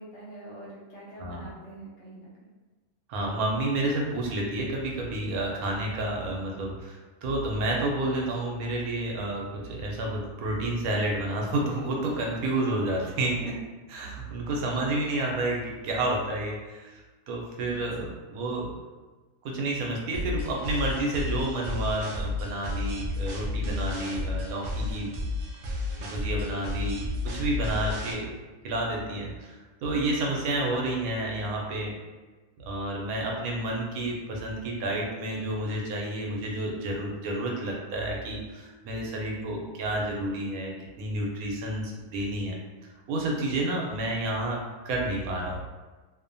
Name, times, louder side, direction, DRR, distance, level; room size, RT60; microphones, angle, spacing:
voice 1, 0.0-2.5 17.7-17.8, right 2 dB, 60° left, -7 dB, 1.1 m, -45 dB
voice 2, 3.1-13.6 13.9-18.7 19.4-25.2 26.0-27.1 27.3-28.3 28.6-31.9 32.6-40.7 41.0-42.6 43.1-45.6, right 1 dB, 90° right, -1 dB, 1.1 m, -30 dB
sound 1, 20.1-28.1, left 2 dB, 65° right, 0.5 m, -32 dB
2.6 x 2.1 x 2.6 m, 1.2 s
omnidirectional pair, 1.5 m